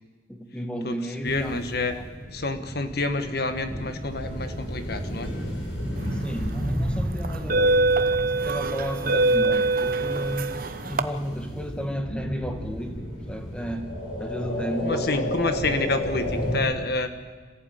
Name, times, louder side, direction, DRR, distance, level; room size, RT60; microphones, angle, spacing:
voice 1, 0.3-1.6 2.0-2.1 6.1-7.9 8.4-10.5 10.9-13.9 14.2-15.7, equal, 5° left, 4 dB, 1.8 m, -33 dB
sound 1, 1.2-16.6, equal, 85° left, 7.9 m, -33 dB
voice 2, 1.2-2.0 2.3-5.3 14.8-17.1, left 3 dB, 55° left, 8 dB, 1.5 m, -28 dB
sound 2, 6.2-6.5 7.2-11.0, right 2 dB, 45° right, 0.9 m, -23 dB
27.0 x 15.0 x 9.2 m, 1.4 s
head